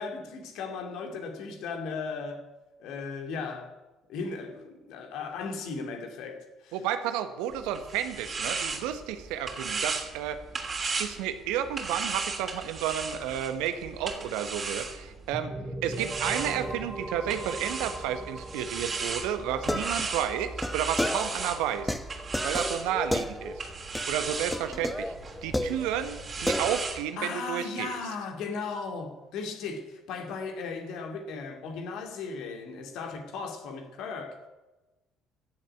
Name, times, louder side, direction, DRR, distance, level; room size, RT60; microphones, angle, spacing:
voice 1, 0.0-2.5 2.8-3.7 4.1-6.8 27.2-34.5, left 4 dB, 60° left, 2.5 m, -36 dB
voice 2, 6.7-10.4 11.0-15.5 15.8-22.0 22.4-23.6 24.1-25.1 25.4-27.9, right 10 dB, 70° right, 1.4 m, -32 dB
sound 1, 7.5-15.3 15.9-27.0, right 4 dB, 35° right, 3.1 m, -36 dB
sound 2, 15.3-24.9, right 2 dB, 10° right, 2.5 m, -41 dB
sound 3, 19.5-21.5 21.9-23.7 24.0-24.2 24.5-26.2 26.5-27.1, left 1 dB, 5° left, 1.2 m, -32 dB
16.0 x 7.4 x 9.3 m
figure-of-eight pair, 50°, 0 cm